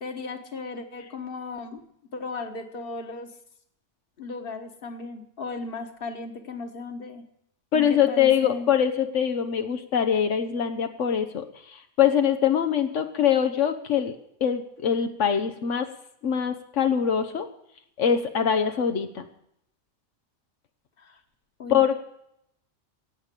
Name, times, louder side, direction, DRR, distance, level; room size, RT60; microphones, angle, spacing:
voice 1, 0.0-1.8 2.1-3.3 4.2-7.2 7.7-8.7 21.0-21.2 21.6-21.8, left 3 dB, 50° left, 6 dB, 1.6 m, -36 dB
voice 2, 7.7-15.9 16.2-17.5 18.0-19.3 21.7-22.0, left 8 dB, 85° left, 7 dB, 1.3 m, -23 dB
16.0 x 8.8 x 8.3 m, 0.76 s
omnidirectional pair, 1.2 m